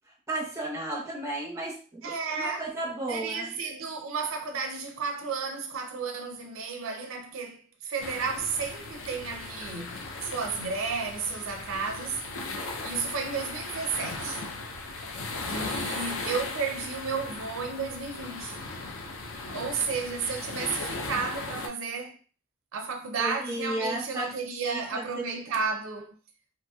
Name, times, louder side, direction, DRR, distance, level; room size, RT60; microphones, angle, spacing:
voice 1, 0.3-3.5 23.2-24.4 24.6-25.3, right 1 dB, 15° right, 0.7 m, -34 dB
voice 2, 2.0-2.7 3.1-12.2 12.8-14.4 15.5-18.6 19.5-22.2 22.7-26.2, right 5 dB, 65° right, 0.4 m, -32 dB
sound 1, 8.0-21.7, left 3 dB, 65° left, 0.5 m, -37 dB
2.9 x 2.7 x 2.2 m
head